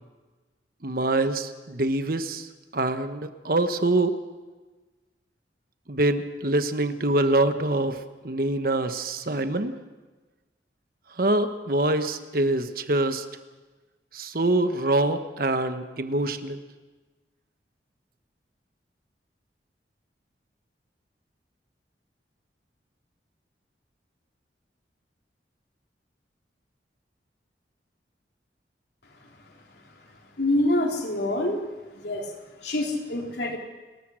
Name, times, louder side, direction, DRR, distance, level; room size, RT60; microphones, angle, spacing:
voice 1, 0.8-2.5 2.7-4.2 5.9-8.0 8.2-9.8 11.2-13.2 14.1-16.6, right 2 dB, 55° right, 9 dB, 1.2 m, -25 dB
voice 2, 30.4-31.6 32.0-32.3 32.6-33.6, left 1 dB, 70° left, 1 dB, 3.6 m, -26 dB
29.5 x 14.0 x 6.4 m, 1.2 s
head